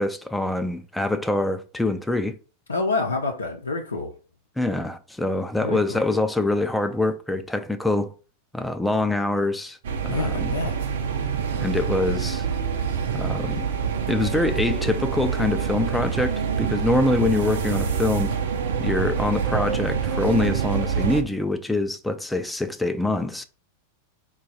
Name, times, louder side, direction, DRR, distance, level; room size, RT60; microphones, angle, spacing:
voice 1, 0.0-2.4 4.6-8.1 8.5-9.8 10.0-10.6 11.6-12.4 13.1-13.6 14.1-18.3 18.8-23.4, left 2 dB, 5° left, 0.4 m, -24 dB
voice 2, 2.7-4.1 5.6-6.0 10.1-10.7, left 3 dB, 75° left, 0.6 m, -27 dB
sound 1, 9.8-21.2, right 6 dB, 60° right, 0.5 m, -26 dB
4.6 x 2.3 x 4.0 m
figure-of-eight pair, 90°, 0 cm